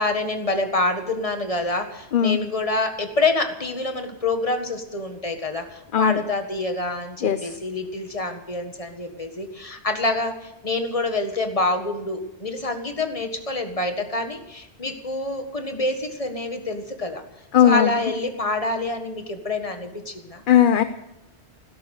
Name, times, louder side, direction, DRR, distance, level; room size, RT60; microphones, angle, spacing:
voice 1, 0.0-17.2 17.6-20.4, left 2 dB, 30° left, 6 dB, 1.7 m, -26 dB
voice 2, 7.2-7.5 17.5-17.9 20.5-20.8, left 9 dB, 55° left, 11 dB, 0.8 m, -17 dB
16.0 x 13.0 x 6.5 m, 0.88 s
omnidirectional pair, 1.2 m